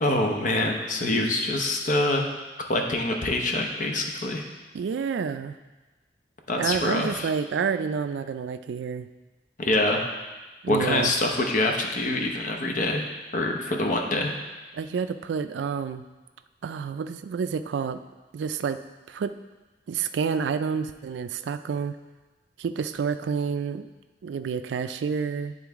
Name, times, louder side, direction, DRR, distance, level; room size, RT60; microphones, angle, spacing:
voice 1, 0.0-2.3 2.7-4.4 6.5-7.3 9.6-10.1 10.7-13.1 13.3-14.4, left 2 dB, 45° left, 2 dB, 0.8 m, -25 dB
voice 2, 4.7-5.6 6.6-9.1 10.6-11.2 14.7-16.0 16.6-18.0 18.3-18.8 19.1-19.4 19.9-22.0 22.6-23.9 24.2-25.6, right 6 dB, 75° right, 11 dB, 0.3 m, -29 dB
9.4 x 3.9 x 3.5 m, 1.2 s
head